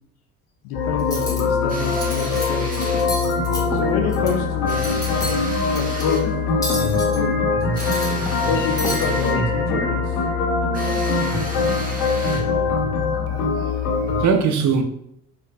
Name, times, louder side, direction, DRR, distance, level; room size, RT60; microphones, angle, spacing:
voice 1, 0.6-2.7 3.7-5.2 5.7-6.4 6.8-7.4 8.4-10.2, left 6 dB, 60° left, 0.6 m, -27 dB
sound 1, 0.7-14.3, left 4 dB, 80° left, 1.1 m, -22 dB
Cutlery silverware, 1.0-1.4 1.9-2.5 2.7-4.3 4.7-5.4 5.8-6.0 6.6-7.2 7.6-8.5 8.8-9.1, left 1 dB, 10° left, 1.1 m, -30 dB
sound 2, 1.7-3.1 4.7-6.3 7.7-9.5 10.7-12.6, right 1 dB, 20° right, 1.1 m, -34 dB
voice 2, 13.3-14.8, right 6 dB, 40° right, 0.6 m, -22 dB
4.6 x 2.4 x 2.4 m
hypercardioid pair, 55°, 45 cm